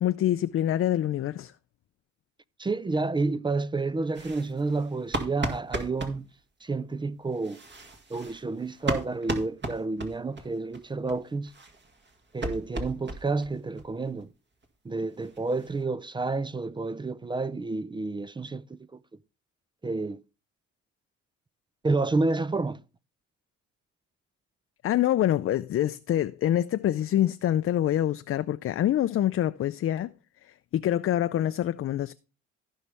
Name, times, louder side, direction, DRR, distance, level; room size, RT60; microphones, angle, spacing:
voice 1, 0.0-1.5 24.8-30.1 30.4-32.1, left 12 dB, 45° left, 0.4 m, -26 dB
voice 2, 2.6-6.3 6.6-7.6 8.1-11.5 12.3-14.3 14.8-18.8 19.8-20.2 21.8-22.8, right 3 dB, 15° right, 0.4 m, -30 dB
sound 1, 4.1-6.2 7.3-10.5 10.7-10.8 11.1-11.2 11.5-13.5 13.8-13.9 14.2-14.3 14.6-14.7 15.0-15.8, right 2 dB, 35° right, 2.0 m, -35 dB
15.0 x 5.5 x 3.4 m
cardioid pair, 90°, 30 cm